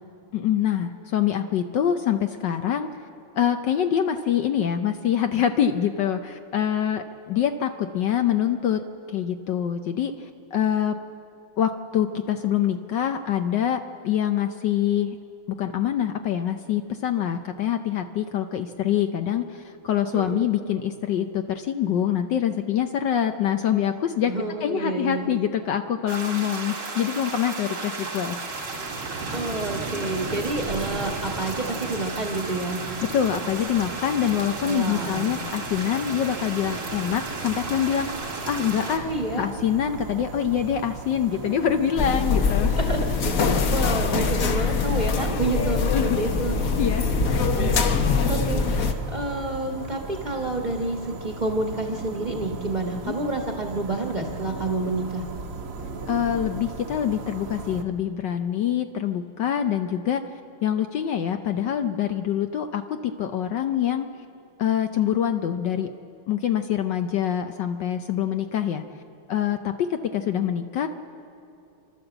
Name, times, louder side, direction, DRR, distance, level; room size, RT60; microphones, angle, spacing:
voice 1, 0.3-2.9 3.3-8.8 9.1-11.0 11.6-15.2 15.6-24.3 24.6-28.4 33.1-38.1 38.5-39.1 39.4-42.7 45.9-46.2 46.7-47.2 47.8-48.0 53.1-53.2 56.1-60.2 60.6-64.1 64.6-65.9 66.3-68.8 69.3-70.9, left 9 dB, 65° left, 7 dB, 1.2 m, -25 dB
voice 2, 20.1-20.5 24.3-25.3 29.3-32.8 34.6-35.3 39.0-39.4 41.4-41.5 42.7-43.0 43.4-46.6 47.6-48.0 48.3-55.2, right 2 dB, 25° right, 2 dB, 1.3 m, -29 dB
sound 1, 26.1-39.0, right 3 dB, 80° right, 3.6 m, -33 dB
sound 2, 38.9-57.8, right 3 dB, 55° right, 1.6 m, -37 dB
sound 3, 42.0-48.9, left 4 dB, 50° left, 1.3 m, -23 dB
30.0 x 12.5 x 8.0 m, 2.7 s
omnidirectional pair, 2.3 m